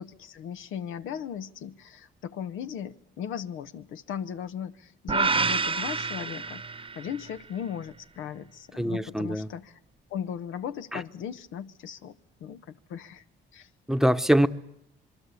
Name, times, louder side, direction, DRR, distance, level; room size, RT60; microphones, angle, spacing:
voice 1, 0.0-9.8 10.1-13.2 13.5-13.7, left 8 dB, 85° left, 10 dB, 1.0 m, -37 dB
sound 1, 5.1-7.3, right 4 dB, 25° right, 1.0 m, -28 dB
voice 2, 8.8-9.5 10.9-11.0 13.9-14.5, equal, ahead, 10 dB, 1.0 m, -23 dB
26.0 x 22.0 x 8.4 m, 0.77 s
cardioid pair, 90°, 20 cm